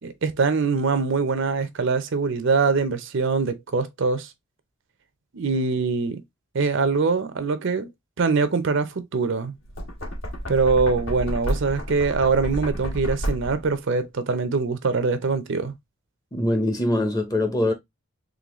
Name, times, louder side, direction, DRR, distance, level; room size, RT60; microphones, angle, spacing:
voice 1, 0.0-4.3 5.3-6.2 6.5-7.9 8.2-9.5 10.5-15.7, right 4 dB, 60° right, 0.6 m, -23 dB
Knock, 9.6-13.8, equal, 60° left, 1.7 m, -30 dB
voice 2, 16.3-17.7, left 1 dB, 15° left, 0.7 m, -23 dB
3.9 x 3.2 x 3.0 m
head